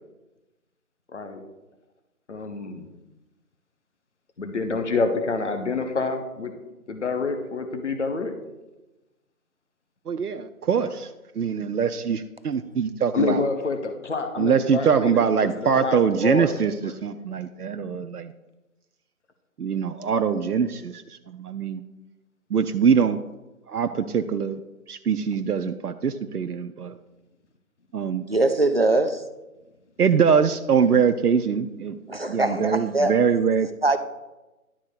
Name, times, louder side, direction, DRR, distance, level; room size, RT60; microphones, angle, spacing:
voice 1, 1.1-1.4 2.3-2.9 4.4-6.5 6.9-8.3 13.1-16.5, left 4 dB, 50° left, 1.1 m, -27 dB
voice 2, 10.1-11.1 11.4-13.5 14.4-18.3 19.6-21.8 22.5-23.2 23.7-24.6 24.9-26.9 27.9-28.2 30.0-32.0 32.3-33.7, right 6 dB, 85° right, 0.7 m, -23 dB
voice 3, 28.3-29.2 32.1-33.1 33.8-34.0, right 2 dB, 40° right, 0.5 m, -22 dB
11.5 x 3.9 x 6.5 m
figure-of-eight pair, 170°, 45 cm